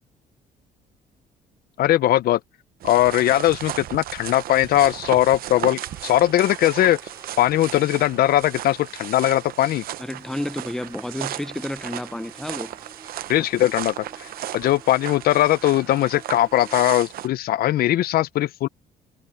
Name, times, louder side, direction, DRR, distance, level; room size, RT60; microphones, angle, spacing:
voice 1, 1.8-2.4 2.8-7.0 7.4-9.8 13.3-18.7, left 13 dB, 65° left, 0.6 m, -20 dB
sound 1, 2.8-17.3, right 13 dB, 60° right, 0.8 m, -35 dB
sound 2, 5.6-16.9, right 3 dB, 20° right, 3.3 m, -50 dB
voice 2, 10.0-12.8, left 1 dB, 5° left, 0.7 m, -31 dB
cardioid pair, 110°, 17 cm